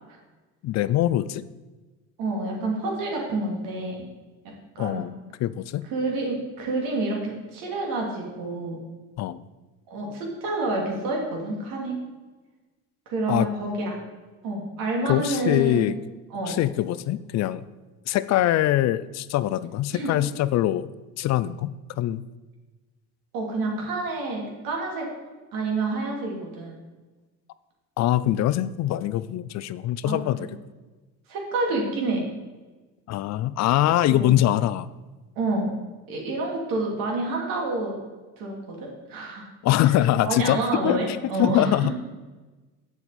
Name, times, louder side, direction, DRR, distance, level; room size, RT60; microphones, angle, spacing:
voice 1, 0.6-1.4 4.8-5.1 5.4-5.9 9.2-9.4 13.3-13.5 15.1-16.0 16.5-17.6 18.1-20.9 21.2-22.2 28.0-30.4 33.1-34.9 39.6-41.9, left 13 dB, 50° left, 16 dB, 0.4 m, -23 dB
voice 2, 2.2-4.0 4.4-5.1 5.9-8.8 9.9-12.0 13.1-13.9 14.4-15.9 16.3-16.6 19.9-20.1 23.3-25.1 25.5-26.8 30.0-30.5 31.3-32.2 34.1-34.4 35.4-35.7 36.1-38.0 38.4-39.5 39.8-39.9 40.2-41.9, right 2 dB, 75° right, -1 dB, 2.5 m, -28 dB
7.8 x 6.9 x 4.2 m, 1.2 s
supercardioid pair, 95°, 34 cm